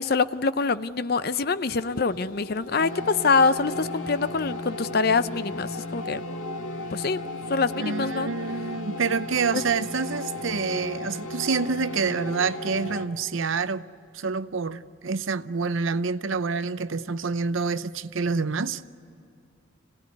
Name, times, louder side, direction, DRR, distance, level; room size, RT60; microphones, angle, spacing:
voice 1, 0.0-6.2 6.9-7.2 7.5-8.3 9.5-9.6, left 4 dB, 50° left, 0.6 m, -25 dB
sound 1, 1.7-13.1, left 1 dB, 80° left, 1.5 m, -35 dB
voice 2, 7.8-13.8 14.1-18.8, right 4 dB, 75° right, 0.7 m, -27 dB
26.5 x 18.0 x 9.6 m
head